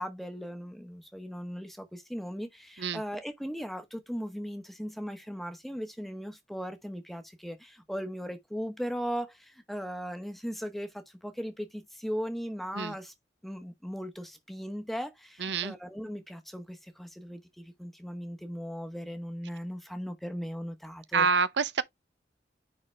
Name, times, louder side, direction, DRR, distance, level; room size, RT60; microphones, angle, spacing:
voice 1, 0.0-13.1 13.4-21.3, equal, ahead, 0.9 m, -38 dB
voice 2, 15.4-15.7 21.1-21.8, right 5 dB, 75° right, 0.7 m, -27 dB
9.7 x 3.6 x 3.2 m
head